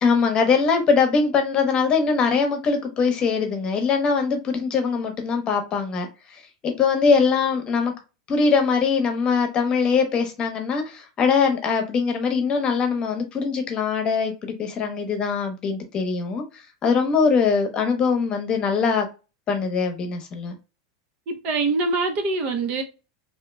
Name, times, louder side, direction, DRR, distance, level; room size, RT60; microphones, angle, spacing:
voice 1, 0.0-7.9 8.3-19.1 19.5-20.5, left 5 dB, 35° left, 0.9 m, -22 dB
voice 2, 21.3-22.8, right 3 dB, 50° right, 0.8 m, -24 dB
2.8 x 2.8 x 2.2 m
hypercardioid pair, 110°, 3 cm